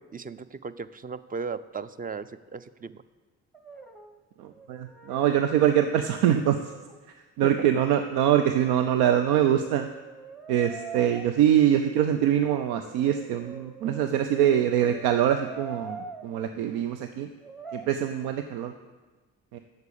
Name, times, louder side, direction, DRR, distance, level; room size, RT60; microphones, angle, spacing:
voice 1, 0.0-3.0 7.4-7.7, right 5 dB, 25° right, 14 dB, 0.5 m, -36 dB
Brass instrument, 3.5-4.2 4.5-7.0 8.0-11.2 12.6-16.4 17.4-17.9, right 4 dB, ahead, 0.9 m, -44 dB
voice 2, 4.4-6.7 7.4-9.9 10.5-17.3 17.7-18.7 19.5-19.6, right 10 dB, 80° right, 8 dB, 0.6 m, -24 dB
8.1 x 6.7 x 6.9 m, 1.3 s
supercardioid pair, 55°, 37 cm